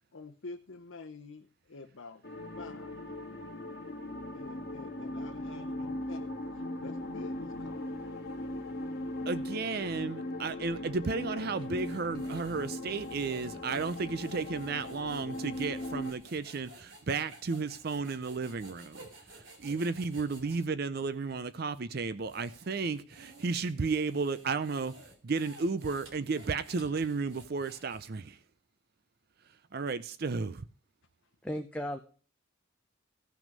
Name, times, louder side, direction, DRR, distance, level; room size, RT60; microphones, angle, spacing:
voice 1, 0.1-2.3 2.6-3.1 4.3-7.9 10.4-10.5, left 3 dB, 75° left, 0.8 m, -48 dB
sound 1, 2.2-16.1, left 1 dB, 50° left, 1.8 m, -39 dB
voice 2, 9.3-19.0 19.3-24.9 25.2-28.4 29.7-30.6, right 4 dB, 50° right, 0.5 m, -33 dB
sound 2, 10.8-14.8, right 1 dB, 25° right, 1.8 m, -55 dB
sound 3, 11.5-20.7 21.3-21.4 22.0-28.3, right 2 dB, 65° right, 3.3 m, -54 dB
voice 3, 31.4-32.0, equal, 5° left, 0.7 m, -35 dB
16.5 x 6.1 x 5.3 m
head